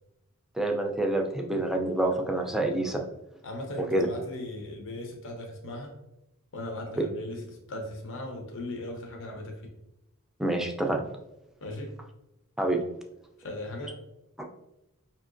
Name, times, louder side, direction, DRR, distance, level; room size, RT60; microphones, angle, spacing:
voice 1, 0.5-3.0 3.9-4.1 10.4-11.0 12.6-12.8, right 1 dB, ahead, 3 dB, 0.4 m, -27 dB
voice 2, 3.4-6.0 6.5-7.4 7.7-9.6 11.6-11.9 13.4-14.0, left 1 dB, 60° left, 2 dB, 0.8 m, -38 dB
5.3 x 2.8 x 2.5 m, 0.89 s
head